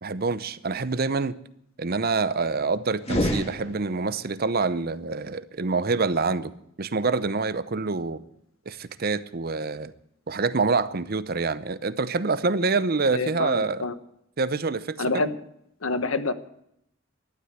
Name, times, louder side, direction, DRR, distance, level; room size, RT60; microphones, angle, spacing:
voice 1, 0.0-1.4 1.8-6.5 6.8-8.2 8.7-9.9 10.3-13.9 14.4-15.3, right 4 dB, 45° right, 0.7 m, -26 dB
sound 1, 3.0-4.3, equal, 30° left, 1.9 m, -28 dB
voice 2, 13.1-13.9 15.0-15.4 15.8-16.3, left 3 dB, 85° left, 1.1 m, -27 dB
12.5 x 12.0 x 8.0 m
head